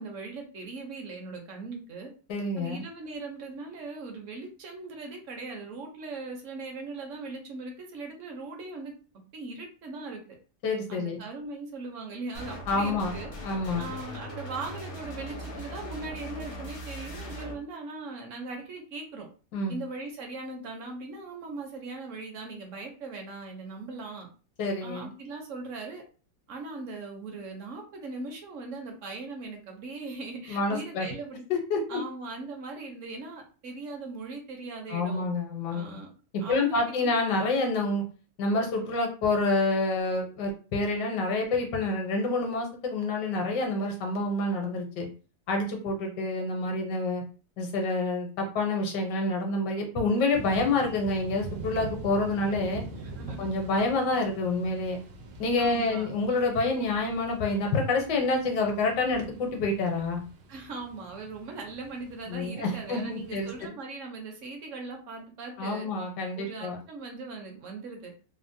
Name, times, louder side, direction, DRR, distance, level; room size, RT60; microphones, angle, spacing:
voice 1, 0.0-2.1 2.6-8.9 9.3-10.2 10.9-13.3 13.8-19.3 19.7-24.3 24.8-26.0 26.5-31.4 31.9-35.3 35.7-36.1 36.4-37.1 52.9-53.5 55.6-56.1 60.5-65.9 66.3-68.1, right 3 dB, 65° right, 2 dB, 0.8 m, -39 dB
voice 2, 2.3-2.8 10.6-11.2 12.7-13.1 13.4-13.9 19.5-19.8 24.6-25.1 30.5-31.1 31.7-32.0 34.9-36.0 36.5-38.0 38.4-45.1 45.5-47.2 47.6-52.8 53.4-55.0 55.4-60.2 62.3-63.5 65.6-66.8, left 2 dB, 75° left, 2 dB, 1.3 m, -28 dB
sound 1, 12.3-17.5, equal, 55° left, 0.6 m, -39 dB
sound 2, 50.3-63.6, right 2 dB, 85° right, 1.3 m, -44 dB
3.3 x 2.0 x 2.5 m, 0.36 s
omnidirectional pair, 1.9 m